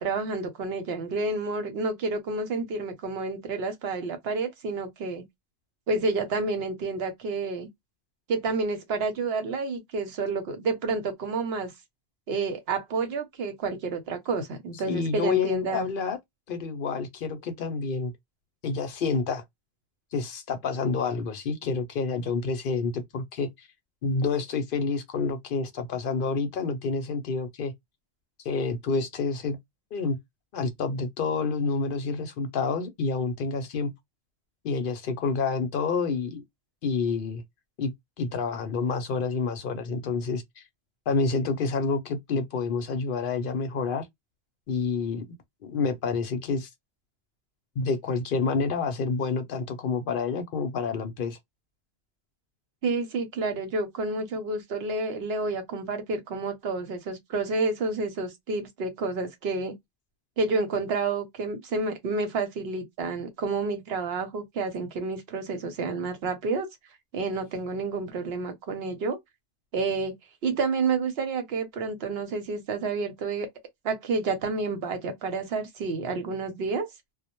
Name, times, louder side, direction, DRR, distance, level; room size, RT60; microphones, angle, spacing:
voice 1, 0.0-5.2 5.9-7.7 8.3-11.7 12.3-15.9 52.8-59.7 60.4-66.7 67.1-69.2 69.7-70.1 70.4-73.5 73.8-76.9, right 3 dB, 80° right, 0.9 m, -29 dB
voice 2, 14.9-16.2 16.5-18.1 18.6-19.4 20.1-23.7 24.0-27.7 28.4-29.6 29.9-30.2 30.5-33.9 34.6-36.4 36.8-37.4 37.8-37.9 38.2-40.6 41.1-44.1 44.7-45.3 45.6-46.7 47.8-51.4, left 4 dB, 65° left, 0.7 m, -28 dB
2.1 x 2.0 x 2.8 m
omnidirectional pair, 1.0 m